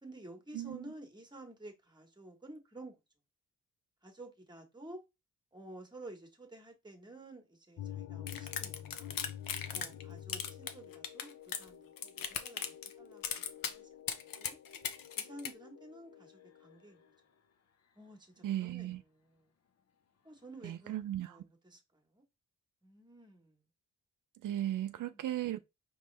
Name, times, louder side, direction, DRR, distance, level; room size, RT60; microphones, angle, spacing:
voice 1, 0.0-2.9 4.0-5.0 5.5-9.1 9.7-12.7 13.0-14.6 15.2-17.0 18.0-19.5 20.2-21.0 21.3-22.2 22.8-23.6 25.0-25.2, right 2 dB, 15° right, 1.3 m, -52 dB
voice 2, 0.5-0.9 18.4-19.0 20.6-21.4 24.4-25.6, right 12 dB, 70° right, 0.5 m, -36 dB
sound 1, 7.8-17.2, left 10 dB, 50° left, 0.7 m, -49 dB
sound 2, 8.3-10.0 10.3-11.7 12.0-12.9 13.2-13.7 14.1-15.5, left 8 dB, 85° left, 0.8 m, -37 dB
5.3 x 3.1 x 3.3 m
wide cardioid pair, 140°, 33 cm